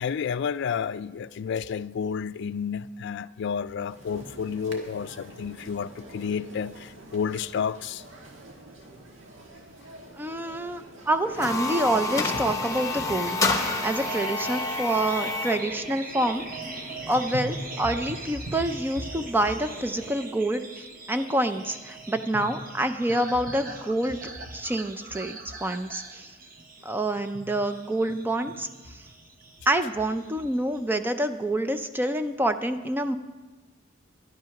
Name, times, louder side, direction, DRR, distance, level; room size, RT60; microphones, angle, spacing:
voice 1, 0.0-8.0, left 6 dB, 60° left, 0.3 m, -31 dB
sound 1, 3.9-20.1, right 1 dB, 80° right, 1.7 m, -47 dB
voice 2, 10.2-13.4 13.8-16.4 17.1-20.6 21.1-24.2 24.5-26.3 26.8-28.7 29.7-33.2, right 1 dB, 10° right, 0.4 m, -27 dB
sound 2, 11.2-15.7, left 3 dB, 15° left, 1.0 m, -28 dB
sound 3, 12.0-30.8, right 2 dB, 45° right, 1.1 m, -40 dB
11.0 x 10.5 x 5.8 m
head